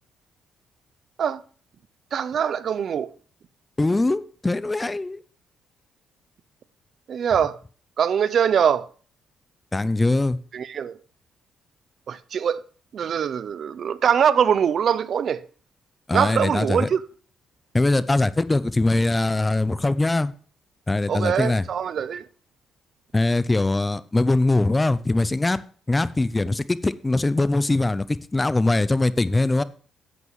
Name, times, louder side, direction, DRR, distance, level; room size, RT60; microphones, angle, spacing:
voice 1, 2.1-3.1 7.1-7.6 8.0-8.9 10.5-11.0 12.1-12.6 12.9-15.4 16.1-17.0 21.1-22.3, right 8 dB, 60° right, 0.4 m, -22 dB
voice 2, 3.8-5.2 9.7-10.4 16.1-16.9 17.7-20.3 20.9-21.7 23.1-25.6 25.9-29.6, left 2 dB, 20° left, 0.5 m, -22 dB
11.0 x 8.2 x 3.1 m
cardioid pair, 90°, 0 cm